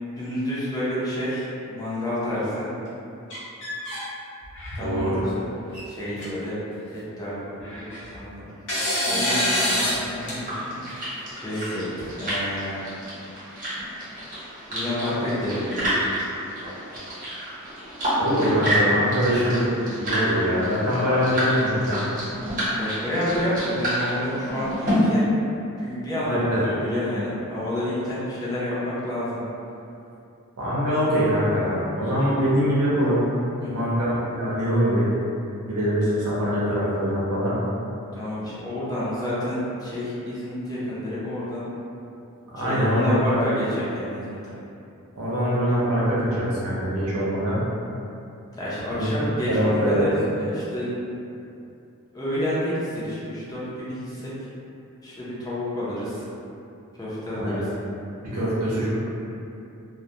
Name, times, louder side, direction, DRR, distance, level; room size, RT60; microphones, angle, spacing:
voice 1, 0.2-2.7 4.8-5.2 5.9-6.6 6.9-7.9 8.1-8.5 9.1-10.8 11.4-11.9 12.2-12.8 14.7-16.2 18.4-18.6 22.8-25.3 25.8-29.4 33.6-33.9 38.1-41.7 42.6-44.5 48.5-50.9 52.1-54.3 55.0-56.2 56.9-57.7, left 1 dB, 15° left, -10 dB, 0.5 m, -29 dB
sound 1, 3.3-4.0 4.4-4.9 5.7-5.8 6.2-6.3 7.6-8.2 8.7-10.0 10.3-10.4 11.5-12.3, equal, 55° left, 0.8 m, -26 dB
voice 2, 4.8-5.2 18.2-19.7 20.0-22.0 26.2-26.6 30.6-33.3 33.7-35.1 35.7-37.6 42.5-43.5 45.1-47.7 49.0-49.1 49.5-50.0 57.4-57.7 58.2-59.0, equal, 70° right, -8 dB, 0.7 m, -23 dB
sound 2, 9.7-24.9, equal, 40° right, 0.9 m, -29 dB
2.2 x 2.1 x 2.7 m, 2.7 s
head